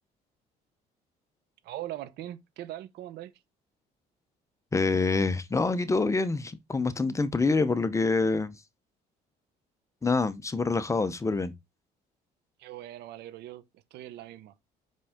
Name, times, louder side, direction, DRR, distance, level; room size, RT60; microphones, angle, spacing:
voice 1, 1.6-3.3 12.6-13.6 13.9-14.5, right 14 dB, 80° right, 0.8 m, -40 dB
voice 2, 4.7-8.6 10.0-11.5, left 3 dB, 20° left, 0.7 m, -26 dB
5.4 x 5.3 x 3.6 m
cardioid pair, 110°, 17 cm